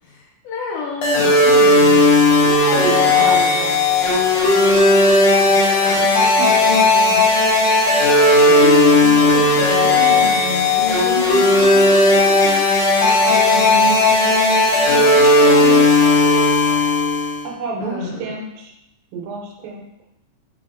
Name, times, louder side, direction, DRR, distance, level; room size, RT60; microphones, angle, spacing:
voice 1, 0.0-2.0 2.7-3.4 5.5-7.2 8.5-12.7 13.3-15.9 17.8-18.2, left 2 dB, 70° left, -4 dB, 2.2 m, -28 dB
sound 1, 1.0-17.4, left 2 dB, 90° left, 1.5 m, -14 dB
voice 2, 2.4-3.9 17.4-18.7 19.1-19.9, right 4 dB, 90° right, 0 dB, 2.5 m, -29 dB
5.2 x 3.0 x 2.4 m, 0.86 s
omnidirectional pair, 4.1 m